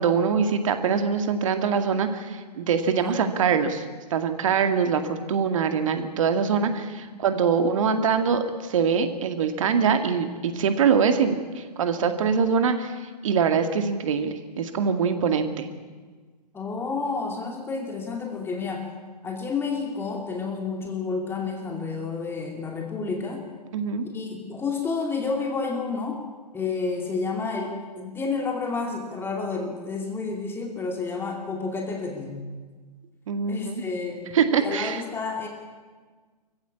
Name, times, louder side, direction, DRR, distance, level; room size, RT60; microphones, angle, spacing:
voice 1, 0.0-3.8 4.1-12.9 13.2-15.7 23.7-24.1 33.3-33.8 34.3-35.0, right 6 dB, 50° right, 8 dB, 2.1 m, -23 dB
voice 2, 16.5-18.9 19.2-23.4 24.1-26.2 26.5-32.5 33.5-34.3 34.6-35.5, left 4 dB, 10° left, 1 dB, 2.5 m, -30 dB
24.5 x 15.5 x 8.6 m, 1.4 s
figure-of-eight pair, 125°, 21 cm